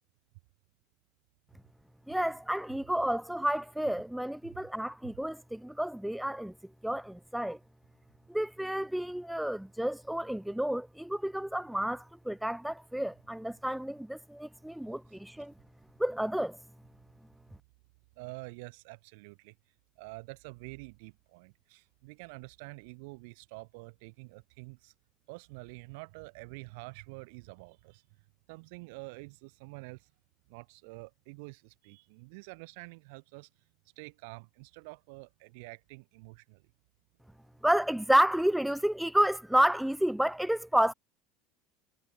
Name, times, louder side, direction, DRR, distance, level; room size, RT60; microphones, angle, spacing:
voice 1, 2.1-6.5 6.8-7.6 8.3-15.5 16.0-16.6 37.6-40.9, right 1 dB, ahead, 0.6 m, -30 dB
voice 2, 18.2-19.5 20.0-24.9 25.3-28.0 28.5-30.1 30.5-33.5 34.0-36.6, right 29 dB, 75° right, 7.4 m, -47 dB
cardioid pair, 155°, 0 cm